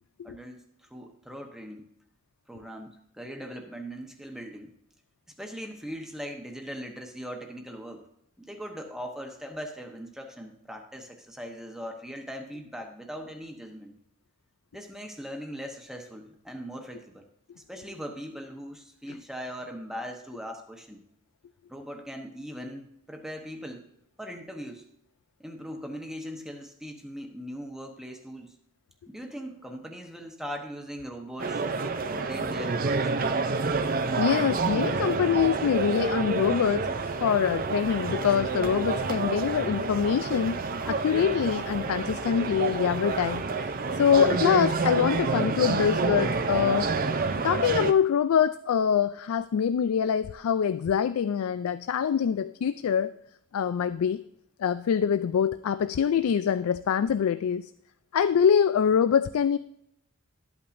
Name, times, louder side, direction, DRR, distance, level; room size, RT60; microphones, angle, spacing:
voice 1, 0.2-0.6 0.9-1.9 2.5-4.7 5.4-8.1 8.4-13.9 14.7-17.3 17.5-21.0 21.7-23.9 24.2-24.8 25.4-28.6 29.1-33.1, equal, ahead, 3 dB, 1.0 m, -40 dB
sound 1, 31.4-47.9, right 4 dB, 40° right, 0.5 m, -28 dB
voice 2, 33.9-36.9 37.2-40.6 40.9-43.4 44.0-46.9 47.3-53.1 53.5-54.2 54.6-57.7 58.1-59.6, left 7 dB, 80° left, 13 dB, 0.3 m, -24 dB
12.5 x 8.6 x 2.6 m, 0.78 s
head